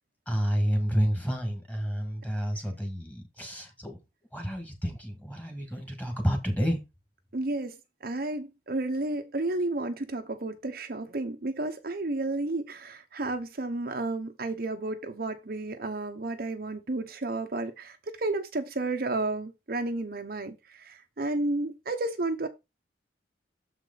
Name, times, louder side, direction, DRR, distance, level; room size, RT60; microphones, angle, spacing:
voice 1, 0.3-4.0 4.3-6.8, equal, 10° left, 1.9 m, -29 dB
voice 2, 7.3-7.8 8.0-22.5, right 2 dB, 55° right, 0.8 m, -32 dB
7.2 x 4.9 x 4.0 m
head